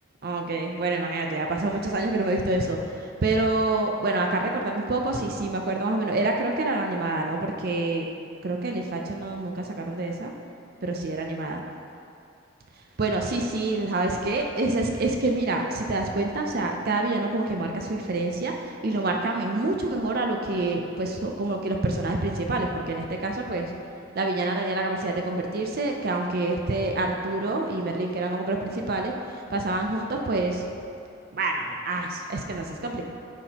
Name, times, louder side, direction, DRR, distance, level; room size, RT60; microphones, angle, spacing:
voice 1, 0.2-8.1 8.4-10.3 10.8-11.6 13.0-23.7 24.1-30.6 31.3-33.1, right 2 dB, 50° right, 2 dB, 0.5 m, -27 dB
9.2 x 6.0 x 2.9 m, 2.5 s
head